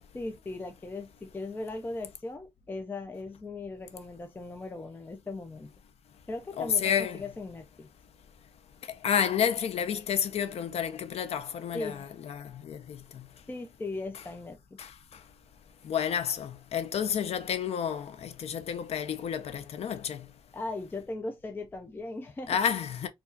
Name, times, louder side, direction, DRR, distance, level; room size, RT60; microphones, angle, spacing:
voice 1, 0.1-5.7 6.3-7.9 11.7-12.1 13.5-14.8 20.5-22.6, left 2 dB, 20° left, 0.4 m, -38 dB
voice 2, 6.6-7.2 9.0-13.3 14.8-14.9 15.8-20.3 22.5-23.1, left 8 dB, 75° left, 0.5 m, -30 dB
4.5 x 2.3 x 2.6 m
wide cardioid pair, 170°, 11 cm